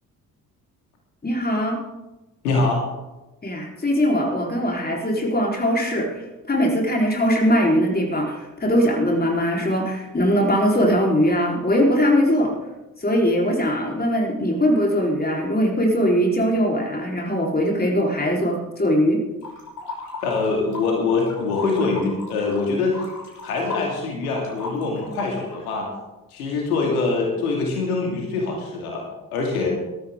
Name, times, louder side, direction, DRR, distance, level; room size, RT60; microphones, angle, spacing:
voice 1, 1.2-1.8 3.4-6.1 6.5-12.5 13.0-19.2, equal, 20° left, 0 dB, 4.1 m, -21 dB
voice 2, 2.4-2.8 20.2-23.0 23.4-25.9 26.3-29.0 29.3-29.7, left 3 dB, 75° left, 0 dB, 2.6 m, -24 dB
sound 1, 19.4-20.9 21.2-25.6, left 3 dB, 45° left, 6.1 m, -36 dB
20.0 x 13.5 x 3.7 m, 1.0 s
figure-of-eight pair, 45°, 44 cm